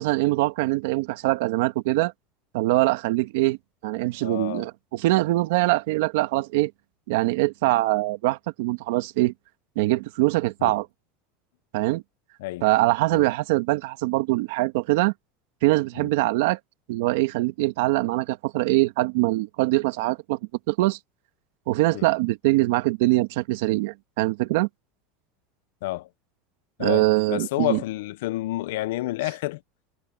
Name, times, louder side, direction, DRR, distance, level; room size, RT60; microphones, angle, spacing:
voice 1, 0.0-2.1 2.5-3.6 3.8-6.7 7.1-9.3 9.7-10.9 11.7-12.0 12.6-15.1 15.6-16.6 16.9-20.4 20.7-21.0 21.7-24.7 26.8-27.8, right 19 dB, 75° right, 1.6 m, -23 dB
voice 2, 4.2-4.7 10.6-10.7 12.4-12.6 13.1-13.3 16.0-16.1 21.9-22.1 25.8-26.1 26.8-29.6, left 17 dB, 80° left, 0.7 m, -29 dB
supercardioid pair, 160°, 0 cm